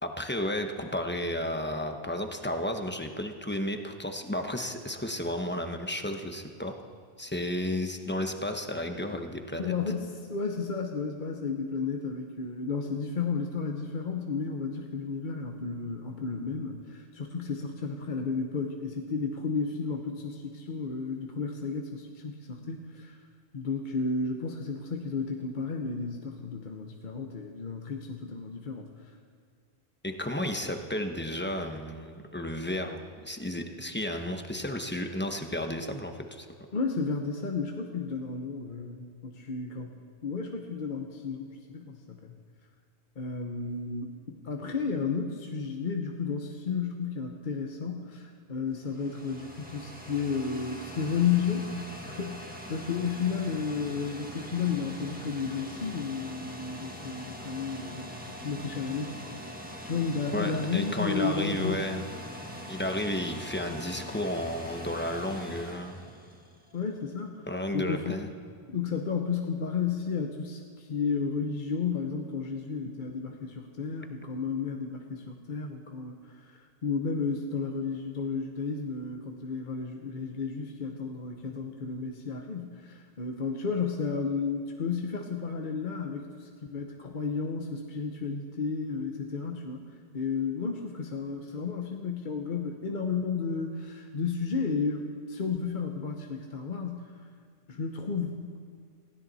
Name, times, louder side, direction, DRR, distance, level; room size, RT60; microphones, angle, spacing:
voice 1, 0.0-6.7 7.2-9.8 30.0-33.0 33.2-36.5 60.3-62.1 62.7-66.0 67.5-68.3, left 1 dB, 10° left, 5 dB, 0.9 m, -32 dB
voice 2, 9.6-23.2 23.5-28.9 36.7-39.9 40.2-42.3 43.2-51.8 52.1-59.1 59.8-61.8 66.7-67.5 67.7-68.3 68.7-89.8 90.1-97.1 97.7-98.5, left 5 dB, 45° left, 2 dB, 1.0 m, -32 dB
sound 1, 48.6-66.8, equal, 10° right, 1.5 m, -43 dB
19.0 x 16.0 x 4.1 m, 2.1 s
omnidirectional pair, 1.2 m